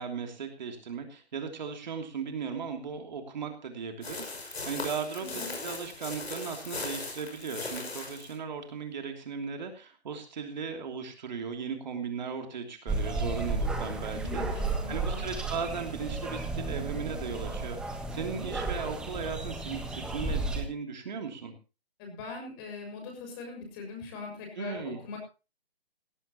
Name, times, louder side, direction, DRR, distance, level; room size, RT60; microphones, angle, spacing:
voice 1, 0.0-14.4 14.9-21.5 24.6-25.2, right 6 dB, 45° right, 4 dB, 3.0 m, -37 dB
sound 1, 4.0-8.4, left 3 dB, 75° left, 6.6 m, -38 dB
voice 2, 5.2-5.5 14.1-15.3 22.0-25.2, left 4 dB, 20° left, 3 dB, 6.3 m, -41 dB
sound 2, 12.9-20.6, right 3 dB, 5° right, 1.4 m, -33 dB
17.5 x 17.0 x 3.0 m, 0.32 s
hypercardioid pair, 155°, 32 cm